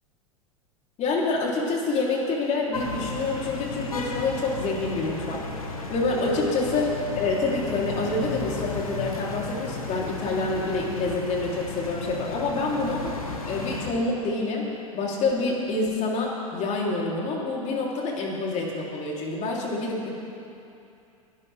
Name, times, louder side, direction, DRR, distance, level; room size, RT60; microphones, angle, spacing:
voice 1, 1.0-6.9 7.2-13.1 13.5-14.7 14.9-20.1, left 3 dB, 40° left, -3 dB, 3.6 m, -27 dB
sound 1, 2.7-13.9, left 3 dB, 85° left, 1.6 m, -34 dB
21.5 x 12.0 x 3.6 m, 2.7 s
hypercardioid pair, 90°, 18 cm